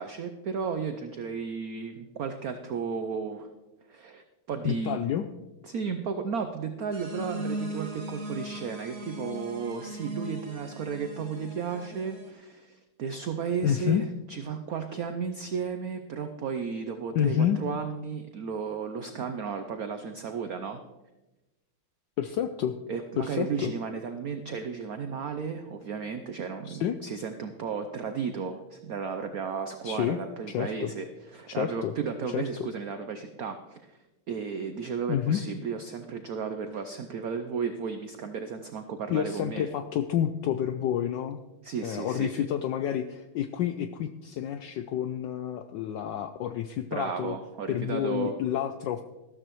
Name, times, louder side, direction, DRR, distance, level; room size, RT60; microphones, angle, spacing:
voice 1, 0.0-3.5 3.9-5.2 5.6-20.8 22.9-31.1 31.3-33.8 34.3-39.7 41.6-42.3 46.9-48.4, right 6 dB, 75° right, 7 dB, 0.8 m, -34 dB
voice 2, 4.6-5.2 13.6-14.0 17.1-17.6 22.2-22.8 23.2-23.7 26.6-27.0 29.8-30.2 30.5-30.9 31.6-31.9 32.3-32.5 35.1-35.4 39.1-41.4 41.8-47.4 47.7-49.0, left 10 dB, 75° left, 9 dB, 1.0 m, -29 dB
sound 1, 6.9-12.3, right 1 dB, 40° right, 1.0 m, -38 dB
13.5 x 13.0 x 3.0 m, 1.1 s
omnidirectional pair, 2.4 m